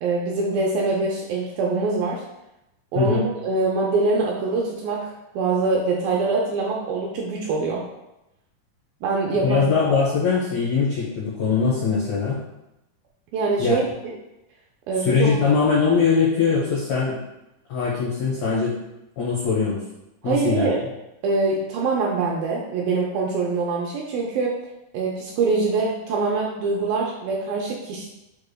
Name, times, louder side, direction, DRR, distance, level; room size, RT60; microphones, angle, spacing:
voice 1, 0.0-2.2 2.9-7.8 9.0-9.7 13.3-14.2 14.9-15.4 20.2-20.8 21.2-24.5 24.9-28.1, right 3 dB, 80° right, -2 dB, 2.1 m, -24 dB
voice 2, 9.4-12.4 13.6-13.8 15.0-17.2 17.7-18.7 19.2-19.8 20.2-20.7, left 5 dB, 80° left, -8 dB, 1.5 m, -21 dB
6.4 x 3.3 x 2.2 m, 0.91 s
omnidirectional pair, 4.5 m